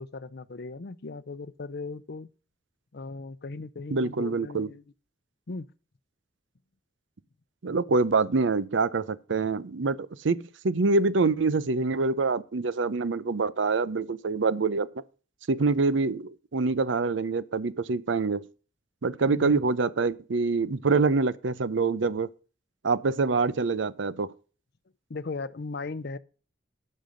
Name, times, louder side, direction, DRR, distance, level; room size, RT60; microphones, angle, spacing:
voice 1, 0.0-2.3 2.9-4.8 5.5-5.7 19.3-19.6 25.1-26.2, left 3 dB, 55° left, 0.6 m, -37 dB
voice 2, 3.9-4.7 7.6-14.9 15.5-18.4 19.0-22.3 22.8-24.3, right 4 dB, 75° right, 0.6 m, -25 dB
10.5 x 5.5 x 6.2 m
head